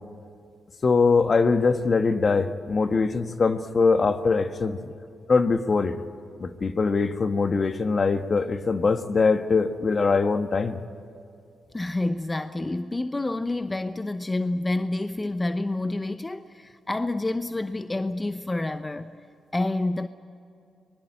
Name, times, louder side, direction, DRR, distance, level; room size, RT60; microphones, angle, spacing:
voice 1, 0.8-4.8 5.3-5.9 6.4-10.8, left 4 dB, 50° left, 1.4 m, -22 dB
voice 2, 11.7-19.2 19.5-20.1, left 2 dB, 25° left, 0.8 m, -28 dB
24.5 x 20.5 x 8.9 m
supercardioid pair, 50°, 0 cm